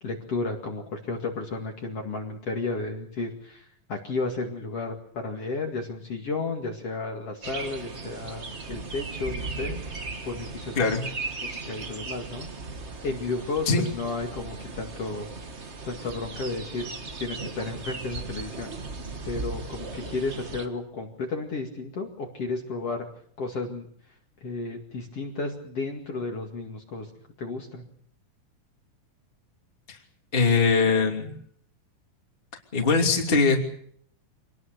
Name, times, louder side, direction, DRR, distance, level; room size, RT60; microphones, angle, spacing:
voice 1, 0.0-10.9 11.4-12.5 13.0-15.3 15.8-16.9 17.2-18.7 19.3-23.1 23.4-23.9 24.4-27.1 27.4-27.8, left 3 dB, 45° left, 1 dB, 2.9 m, -33 dB
sound 1, 7.4-20.7, right 3 dB, 50° right, 0.7 m, -37 dB
voice 2, 30.3-31.3 32.7-33.6, left 4 dB, 15° left, 2 dB, 2.7 m, -21 dB
26.0 x 19.5 x 6.7 m, 0.65 s
omnidirectional pair, 4.0 m